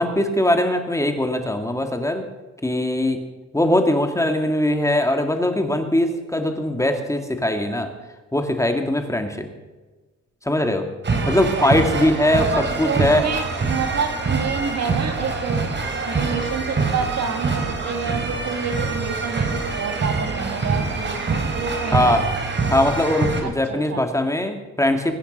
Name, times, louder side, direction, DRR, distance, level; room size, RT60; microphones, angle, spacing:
voice 1, 0.0-2.3 2.6-3.2 3.5-7.9 8.3-9.5 10.4-10.9 11.3-13.3 21.9-22.3 22.7-25.1, left 1 dB, 10° left, 6 dB, 2.1 m, -21 dB
sound 1, 11.0-23.4, right 4 dB, 40° right, 3.4 m, -25 dB
voice 2, 12.5-15.6 16.0-22.0 23.4-23.5 23.9-24.0, right 6 dB, 60° right, 6 dB, 2.4 m, -28 dB
22.0 x 10.0 x 5.4 m, 1.2 s
cardioid pair, 90°, 30 cm